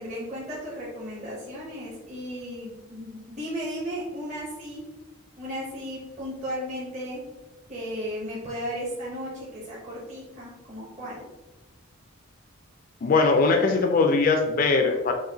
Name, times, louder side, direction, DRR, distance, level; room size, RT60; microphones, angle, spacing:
voice 1, 0.0-4.8 5.4-7.2 7.7-11.2, equal, 35° right, -6 dB, 0.7 m, -35 dB
voice 2, 13.0-15.1, left 4 dB, 40° left, 4 dB, 0.3 m, -21 dB
6.0 x 2.1 x 2.7 m, 1.1 s
head